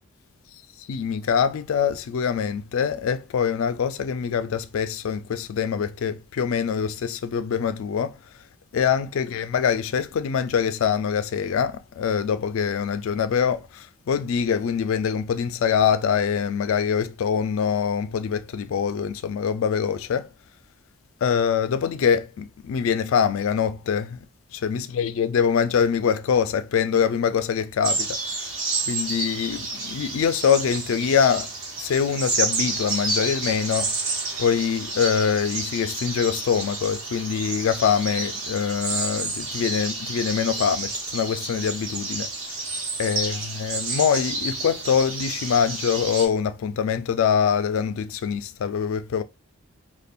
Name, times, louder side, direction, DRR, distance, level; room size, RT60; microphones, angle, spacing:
voice 1, 0.9-8.2 8.7-20.3 21.2-24.2 24.5-28.2 28.9-31.5 31.8-33.9 34.4-42.3 43.0-49.2, left 7 dB, 70° left, 0.3 m, -24 dB
sound 1, 27.8-46.3, right 3 dB, 75° right, 1.0 m, -30 dB
2.4 x 2.1 x 3.4 m
head